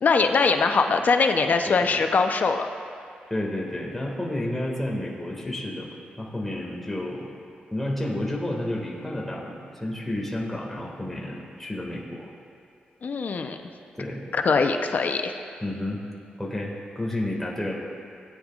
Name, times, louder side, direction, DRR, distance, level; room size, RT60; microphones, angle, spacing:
voice 1, 0.0-2.7 13.0-13.6 14.3-15.3, left 4 dB, 55° left, 5 dB, 0.7 m, -22 dB
voice 2, 3.3-5.9 6.2-7.3 7.7-12.3 14.0-14.3 15.6-16.0 16.4-17.7, left 1 dB, 5° left, -3 dB, 1.9 m, -31 dB
17.5 x 9.5 x 2.5 m, 2.4 s
cardioid pair, 90°, 3 cm